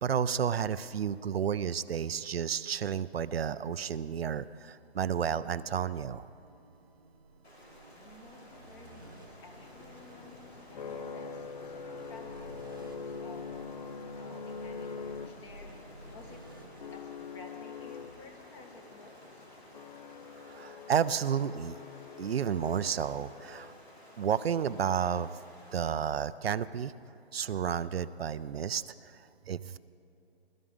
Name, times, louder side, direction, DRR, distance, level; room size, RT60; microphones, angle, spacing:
voice 1, 0.0-6.3 20.5-21.8 22.2-23.7 24.2-25.4 25.7-26.9 27.3-28.8 29.5-29.8, right 8 dB, 70° right, 14 dB, 0.5 m, -31 dB
sound 1, 5.6-18.2, right 2 dB, 25° right, 0.3 m, -54 dB
Stream, 7.4-25.9, equal, 90° left, 3.0 m, -55 dB
sound 2, 7.9-24.2, left 5 dB, 45° left, 0.4 m, -45 dB
voice 2, 7.9-13.4 13.7-16.4 16.9-19.4, left 2 dB, 25° left, 3 dB, 1.7 m, -53 dB
21.0 x 13.0 x 3.6 m, 2.8 s
hypercardioid pair, 145°, 31 cm